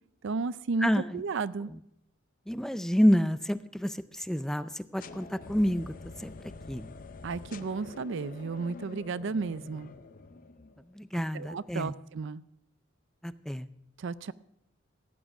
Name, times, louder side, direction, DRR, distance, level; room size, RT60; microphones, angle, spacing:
voice 1, 0.2-1.7 7.2-9.9 11.3-12.4 14.0-14.3, right 4 dB, 65° right, 17 dB, 0.5 m, -33 dB
voice 2, 0.8-1.2 1.7-1.8 2.5-6.9 10.9-11.9 13.2-13.7, equal, 5° left, 14 dB, 0.4 m, -29 dB
sound 1, 5.0-10.9, left 3 dB, 45° left, 0.6 m, -46 dB
15.5 x 8.8 x 6.0 m, 0.81 s
head